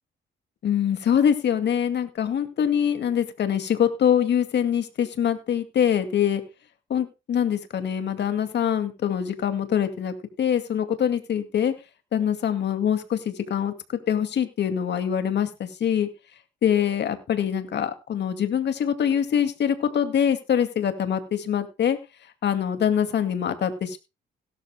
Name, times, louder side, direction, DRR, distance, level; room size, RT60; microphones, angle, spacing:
voice 1, 0.6-6.4 6.9-11.7 12.1-16.1 16.6-22.0 22.4-24.0, left 8 dB, 60° left, 9 dB, 2.2 m, -24 dB
17.0 x 12.5 x 2.2 m, 0.26 s
cardioid pair, 90°, 20 cm